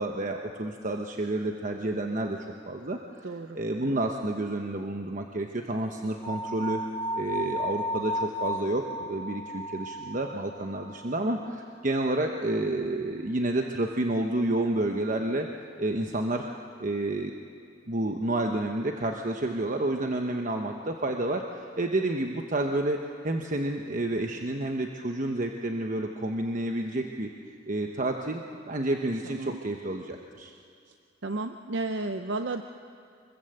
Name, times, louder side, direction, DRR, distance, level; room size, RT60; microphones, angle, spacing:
voice 1, 0.0-2.4 2.7-6.8 7.1-15.5 15.8-16.5 16.8-17.3 17.9-23.0 23.2-27.3 27.7-30.5, right 1 dB, 45° right, 3 dB, 1.1 m, -30 dB
voice 2, 3.2-3.6 3.9-4.0 29.3-29.6 31.2-32.6, right 2 dB, 70° right, 7 dB, 0.7 m, -32 dB
sound 1, 6.2-11.3, equal, 25° left, 2.4 m, -34 dB
25.0 x 21.5 x 8.0 m, 2.3 s
head